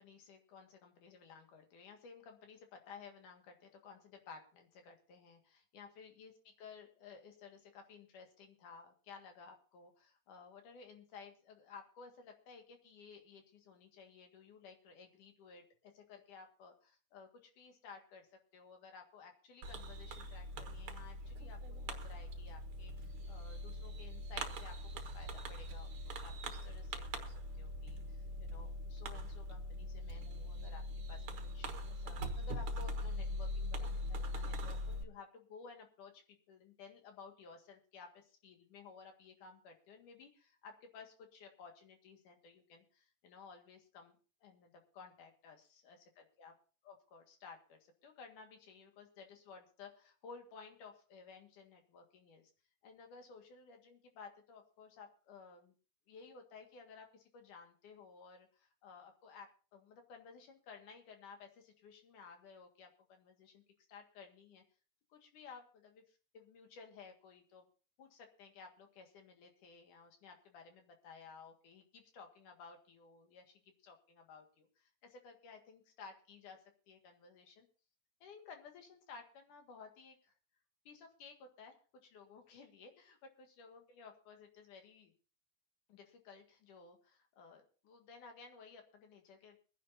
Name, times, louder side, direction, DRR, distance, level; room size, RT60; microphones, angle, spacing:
voice 1, 0.0-18.3 18.5-21.6 21.8-30.8 31.1-31.2 31.5-46.5 46.8-52.4 52.8-55.7 56.1-63.6 63.9-64.6 65.1-67.7 68.0-77.7 78.2-80.3 80.9-83.2 83.6-85.1 85.9-89.6, left 5 dB, 75° left, 4 dB, 3.4 m, -56 dB
Fireworks, 19.6-35.0, left 1 dB, 55° right, 1.8 m, -42 dB
23.5 x 10.0 x 2.7 m, 0.38 s
omnidirectional pair, 3.7 m